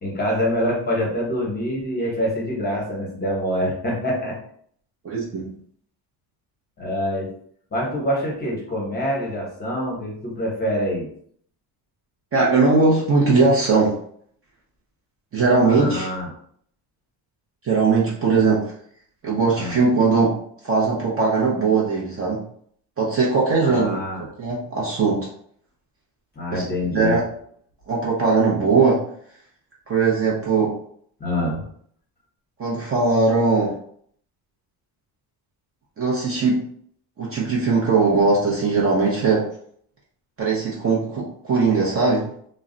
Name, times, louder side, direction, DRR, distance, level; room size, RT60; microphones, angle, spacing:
voice 1, 0.0-4.4 6.8-7.3 7.7-11.1 15.5-16.3 19.5-19.8 23.6-24.3 26.4-27.2 31.2-31.6, equal, 20° left, -3 dB, 0.8 m, -25 dB
voice 2, 5.0-5.5 12.3-13.9 15.3-16.1 17.6-18.6 19.2-20.3 20.6-22.4 23.0-24.0 24.4-25.3 26.5-26.6 26.9-27.2 27.9-29.0 29.9-30.7 32.6-33.7 36.0-36.6 37.2-39.5 40.4-42.3, right 4 dB, 30° right, -4 dB, 0.6 m, -19 dB
2.3 x 2.1 x 3.7 m, 0.62 s
cardioid pair, 160°, 44 cm